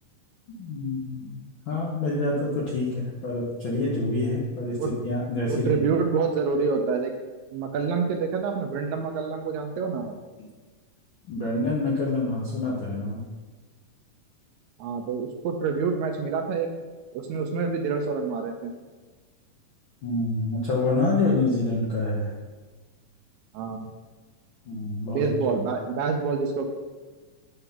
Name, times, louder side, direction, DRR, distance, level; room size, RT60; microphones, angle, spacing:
voice 1, 0.5-1.4 1.7-5.7 11.3-13.2 20.0-22.3 24.6-25.3, left 2 dB, 70° left, -5 dB, 1.1 m, -27 dB
voice 2, 5.5-7.1 7.5-10.2 14.8-16.7 17.1-18.7 23.5-23.9 25.1-26.7, right 5 dB, 75° right, 4 dB, 1.8 m, -27 dB
7.8 x 3.7 x 5.7 m, 1.3 s
omnidirectional pair, 3.6 m